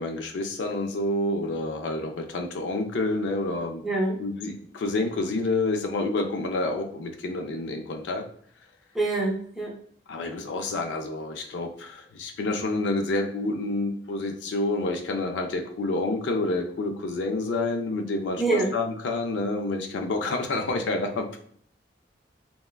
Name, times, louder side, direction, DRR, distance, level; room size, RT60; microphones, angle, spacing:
voice 1, 0.0-3.8 4.2-8.2 10.1-21.5, left 2 dB, 85° left, 4 dB, 0.4 m, -28 dB
voice 2, 3.8-4.2 8.9-9.7 18.4-18.7, right 2 dB, ahead, -3 dB, 0.5 m, -25 dB
3.2 x 2.1 x 2.2 m, 0.62 s
head